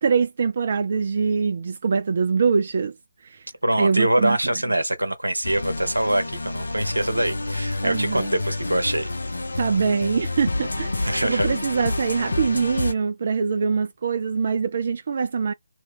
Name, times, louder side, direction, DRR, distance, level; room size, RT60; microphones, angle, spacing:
voice 1, 0.0-2.9 3.2-3.5 3.8-4.4 7.8-8.3 9.6-15.5, right 5 dB, 40° right, 0.3 m, -23 dB
voice 2, 3.6-9.1 11.1-11.5, right 1 dB, 80° right, 0.9 m, -24 dB
sound 1, 5.4-12.9, left 2 dB, 65° left, 0.7 m, -28 dB
2.8 x 2.2 x 3.5 m
figure-of-eight pair, 150°, 0 cm